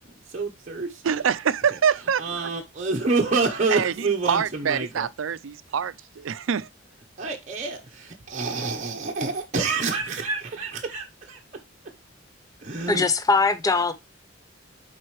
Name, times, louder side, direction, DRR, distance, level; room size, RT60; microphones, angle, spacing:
voice 1, 0.3-1.0 2.2-5.1 7.2-11.4 12.6-13.1, right 4 dB, 35° right, 0.9 m, -27 dB
voice 2, 1.0-2.5 3.7-6.7, right 7 dB, 70° right, 0.4 m, -25 dB
voice 3, 12.9-13.9, left 3 dB, 20° left, 0.5 m, -21 dB
7.6 x 4.5 x 3.1 m
head